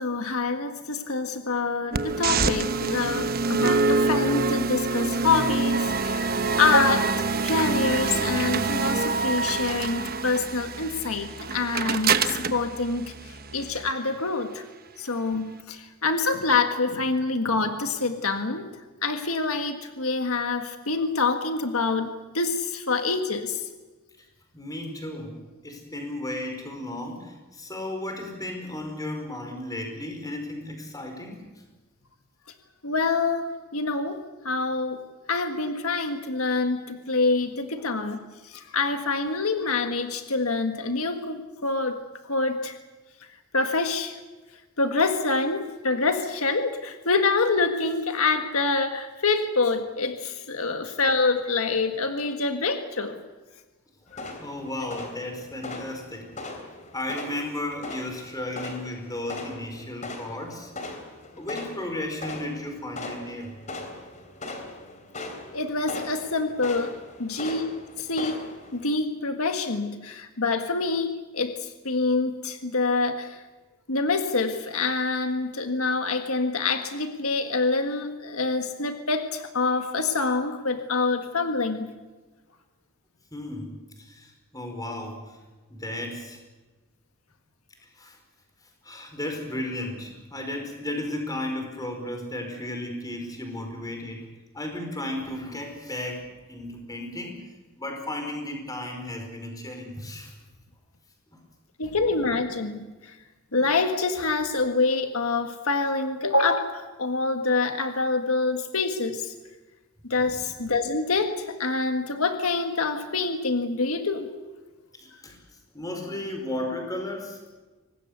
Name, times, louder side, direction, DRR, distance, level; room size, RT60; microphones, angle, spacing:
voice 1, 0.0-7.1 7.4-14.6 15.0-18.7 19.0-23.7 32.8-34.2 34.4-35.0 35.3-38.2 38.4-42.0 42.3-42.8 43.5-44.1 44.8-53.2 54.1-54.3 65.5-67.7 68.0-68.4 68.7-73.4 73.9-81.9 101.8-103.1 103.5-109.3 110.1-114.3, left 3 dB, 75° left, 6 dB, 1.7 m, -26 dB
sound 1, 1.9-13.9, right 4 dB, 45° right, 1.1 m, -26 dB
voice 2, 24.5-31.5 50.7-50.8 54.2-56.3 56.9-61.0 61.3-63.6 67.3-67.5 83.3-85.4 85.7-86.4 88.0-88.2 88.8-94.3 94.5-97.4 97.8-100.3 101.8-101.9 110.2-110.4 115.0-115.4 115.7-117.4, left 1 dB, 15° left, 4 dB, 4.9 m, -34 dB
sound 2, 54.1-68.8, left 2 dB, 35° left, 3.5 m, -40 dB
24.5 x 19.0 x 8.2 m, 1.2 s
head